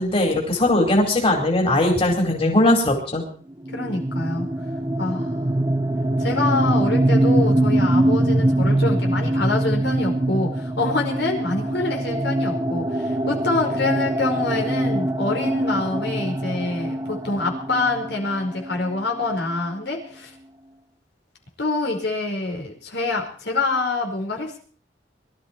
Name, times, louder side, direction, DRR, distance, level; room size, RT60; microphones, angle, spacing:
voice 1, 0.0-3.2, left 1 dB, 35° left, 0 dB, 4.4 m, -19 dB
sound 1, 3.6-19.2, right 1 dB, 20° right, 1.0 m, -23 dB
voice 2, 3.7-4.5 5.0-5.4 6.2-20.3 21.6-24.6, left 2 dB, 85° left, 1 dB, 5.0 m, -26 dB
23.0 x 13.0 x 4.5 m, 0.43 s
head